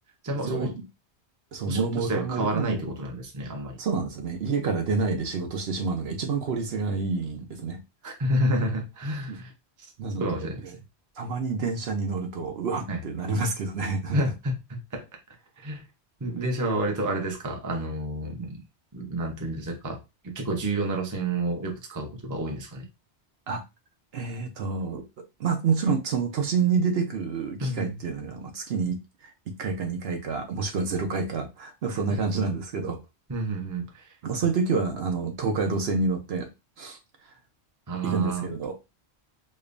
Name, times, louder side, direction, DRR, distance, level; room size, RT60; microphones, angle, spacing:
voice 1, 0.2-0.7 1.7-3.8 8.0-9.5 10.1-10.7 12.9-13.0 14.1-15.8 16.2-18.6 18.9-22.8 27.6-28.0 31.9-32.2 33.3-34.1 37.9-38.5, right 1 dB, 20° right, 0.6 m, -30 dB
voice 2, 1.5-2.9 3.8-7.8 9.3-9.4 10.0-10.5 11.2-14.2 23.5-23.6 24.1-29.3 29.6-33.0 34.2-36.5 36.8-37.0 38.0-38.8, right 4 dB, 70° right, 0.9 m, -28 dB
5.1 x 2.1 x 2.5 m
omnidirectional pair, 1.1 m